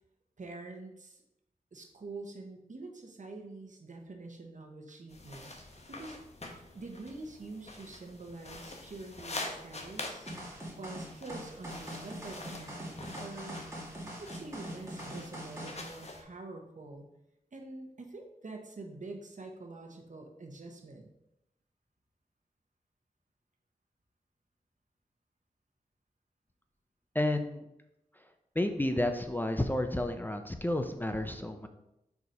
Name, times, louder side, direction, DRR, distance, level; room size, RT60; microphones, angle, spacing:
voice 1, 0.4-1.2 1.7-6.2 6.7-10.3 10.8-13.6 14.0-17.1 17.5-21.1, right 2 dB, 60° right, 3 dB, 1.0 m, -46 dB
sound 1, 5.1-16.2, left 2 dB, 45° left, 1.0 m, -46 dB
sound 2, 10.3-15.8, right 1 dB, 20° right, 2.1 m, -42 dB
voice 2, 27.1-27.6 28.6-31.7, left 1 dB, 15° left, 6 dB, 0.5 m, -31 dB
4.8 x 4.1 x 5.2 m, 0.86 s
wide cardioid pair, 65°, 15 cm